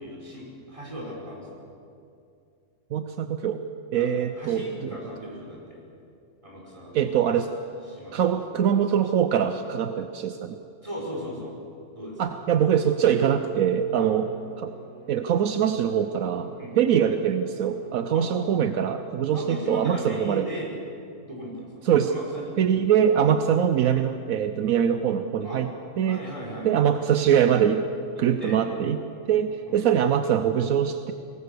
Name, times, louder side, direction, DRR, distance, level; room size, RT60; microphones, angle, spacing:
voice 1, 0.0-1.6 3.9-5.8 6.4-7.1 7.9-8.3 10.8-11.5 11.9-12.2 14.0-14.1 16.6-16.8 18.1-18.3 19.3-20.7 21.2-22.6 25.4-25.6 26.1-26.9 28.4-28.6 29.7-29.8, equal, 20° right, -3 dB, 5.0 m, -37 dB
voice 2, 2.9-3.6 3.9-4.9 6.9-7.5 8.1-10.6 12.2-14.7 15.1-20.5 21.8-22.1 22.6-25.7 26.0-26.2 26.6-27.9 28.2-29.0 29.3-31.1, right 8 dB, 75° right, 9 dB, 1.2 m, -23 dB
Bowed string instrument, 12.1-20.4, right 1 dB, 5° left, 4.5 m, -47 dB
23.0 x 18.5 x 6.8 m, 2.5 s
omnidirectional pair, 1.5 m